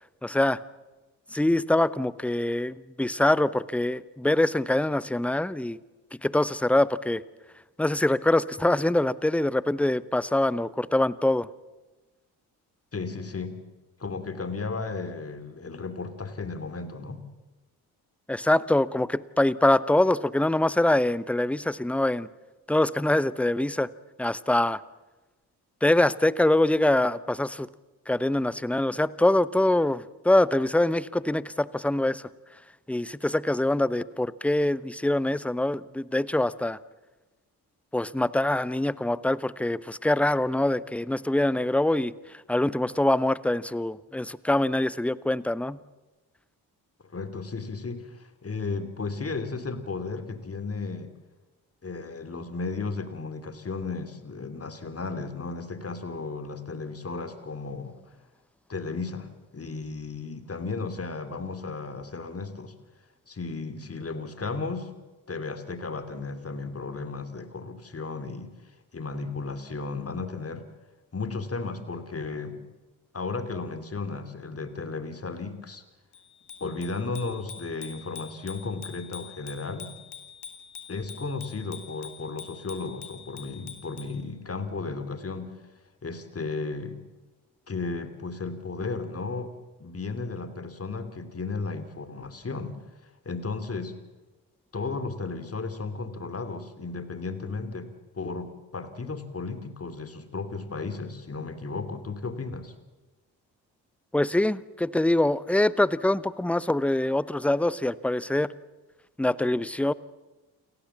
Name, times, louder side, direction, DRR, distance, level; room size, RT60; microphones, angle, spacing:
voice 1, 0.2-0.6 1.3-5.8 6.2-7.2 7.8-11.5 18.3-22.3 22.7-23.9 24.2-24.8 25.8-27.7 28.1-32.3 32.9-36.8 37.9-45.8 104.1-108.5 109.2-109.9, left 1 dB, 5° left, 19 dB, 0.8 m, -24 dB
voice 2, 12.9-13.6 14.0-17.3 47.1-51.1 51.8-57.9 58.7-62.7 63.3-64.9 65.3-68.5 68.9-70.6 71.1-72.6 73.1-75.8 76.6-79.9 80.9-85.5 86.0-87.0 87.7-89.5 89.8-92.8 93.2-94.0 94.7-97.9 98.1-102.7, left 4 dB, 30° left, 11 dB, 2.9 m, -34 dB
Bicycle bell, 76.1-84.2, left 7 dB, 50° left, 3.2 m, -45 dB
29.0 x 15.5 x 7.2 m, 1.2 s
figure-of-eight pair, 45°, 50 cm